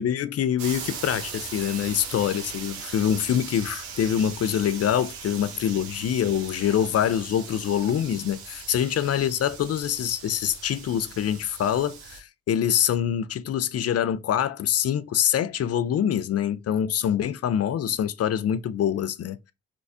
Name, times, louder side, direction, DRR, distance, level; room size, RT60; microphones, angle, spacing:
voice 1, 0.0-19.4, left 9 dB, 45° left, 0.4 m, -25 dB
sound 1, 0.6-12.2, right 6 dB, 90° right, 0.6 m, -39 dB
4.2 x 2.3 x 2.6 m
hypercardioid pair, 40°, 35 cm